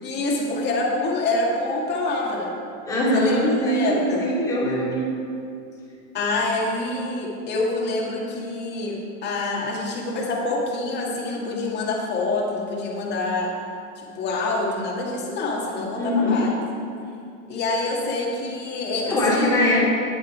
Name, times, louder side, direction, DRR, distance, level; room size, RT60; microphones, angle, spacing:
voice 1, 0.0-2.5 3.1-3.4 3.7-4.2 6.1-13.5 14.0-16.5 17.5-19.5, left 2 dB, 25° left, -3 dB, 2.2 m, -26 dB
voice 2, 2.8-5.0 16.0-16.5 19.0-19.9, left 1 dB, 10° left, -8 dB, 3.0 m, -21 dB
10.5 x 10.0 x 4.7 m, 2.4 s
supercardioid pair, 150°, 39 cm